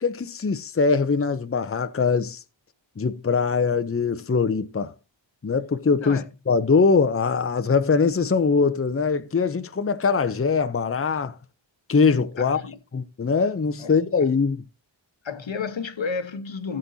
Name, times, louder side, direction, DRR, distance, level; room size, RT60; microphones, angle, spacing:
voice 1, 0.0-2.4 3.0-4.9 5.4-11.4 11.9-12.6 12.9-14.6, left 5 dB, 30° left, 0.7 m, -22 dB
voice 2, 12.4-12.8 13.8-14.0 15.2-16.8, left 5 dB, 70° left, 1.2 m, -31 dB
15.0 x 7.7 x 2.7 m
wide cardioid pair, 65°, 47 cm